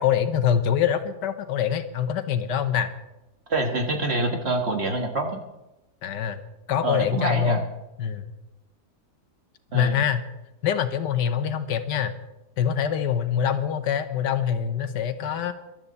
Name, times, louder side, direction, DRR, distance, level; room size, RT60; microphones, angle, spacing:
voice 1, 0.0-2.9 6.0-6.4 6.7-7.6 8.0-8.2 9.7-10.2 10.6-12.1 12.6-15.5, left 8 dB, 85° left, 10 dB, 1.6 m, -24 dB
voice 2, 3.5-5.4 6.8-7.6 9.7-10.0, right 2 dB, 40° right, 3 dB, 1.6 m, -26 dB
20.0 x 12.5 x 4.1 m, 0.99 s
omnidirectional pair, 1.8 m